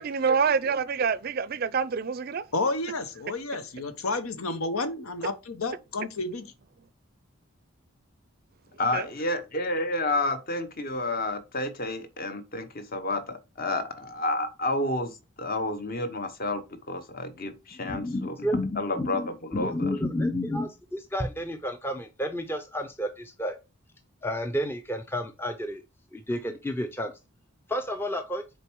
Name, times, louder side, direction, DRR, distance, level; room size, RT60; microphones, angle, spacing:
voice 1, 0.0-2.4 8.9-9.0, right 5 dB, 45° right, 0.4 m, -26 dB
voice 2, 2.5-6.5, left 3 dB, 90° left, 1.0 m, -31 dB
voice 3, 8.8-18.5 18.8-19.9, left 2 dB, 45° left, 1.0 m, -30 dB
voice 4, 17.8-23.6 24.2-25.8 26.1-27.1 27.7-28.4, left 1 dB, 10° left, 0.5 m, -31 dB
6.8 x 4.3 x 4.6 m
head